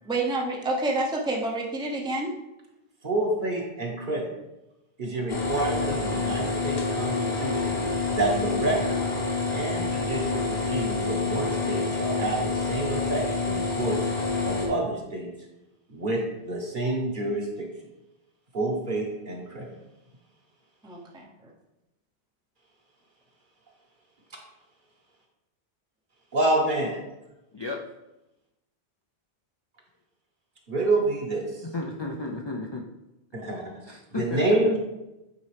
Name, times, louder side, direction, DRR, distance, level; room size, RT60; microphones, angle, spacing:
voice 1, 0.1-2.4 20.8-21.3, right 2 dB, 5° right, -1 dB, 0.7 m, -28 dB
voice 2, 3.0-4.3 5.0-7.8 8.1-9.0 9.5-14.0 14.4-15.3 15.9-17.7 18.5-19.7 26.3-27.0 30.7-31.6 33.3-33.6 34.1-34.8, right 2 dB, 45° right, -1 dB, 1.4 m, -28 dB
sound 1, 5.3-14.7, left 3 dB, 65° left, 1.5 m, -27 dB
voice 3, 27.5-27.8 31.6-32.9 33.9-34.4, left 2 dB, 40° left, 0 dB, 0.4 m, -33 dB
8.7 x 4.2 x 3.3 m, 0.95 s
omnidirectional pair, 1.1 m